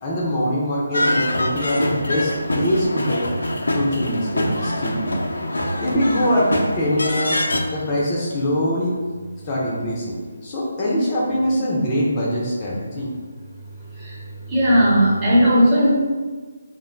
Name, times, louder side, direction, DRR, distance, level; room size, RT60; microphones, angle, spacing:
voice 1, 0.0-3.3 3.7-5.1 5.8-7.4 7.7-9.0 9.4-13.1, equal, 25° left, -5 dB, 0.6 m, -23 dB
sound 1, 0.9-7.6, left 1 dB, 75° left, 0.4 m, -24 dB
voice 2, 14.5-15.9, equal, 15° right, -10 dB, 1.0 m, -15 dB
2.5 x 2.1 x 3.7 m, 1.4 s
figure-of-eight pair, 150°, 0 cm